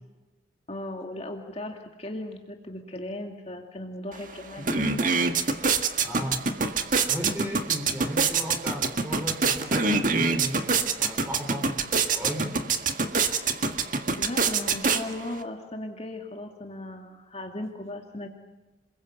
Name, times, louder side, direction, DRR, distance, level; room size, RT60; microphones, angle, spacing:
voice 1, 0.7-5.2 14.2-18.3, left 1 dB, 30° left, 2 dB, 2.4 m, -37 dB
sound 1, 4.1-4.2 4.5-15.4, right 4 dB, 40° right, 1.9 m, -26 dB
voice 2, 6.0-6.5 7.1-12.5, equal, 10° right, 5 dB, 4.7 m, -35 dB
28.5 x 21.5 x 8.2 m, 1.1 s
head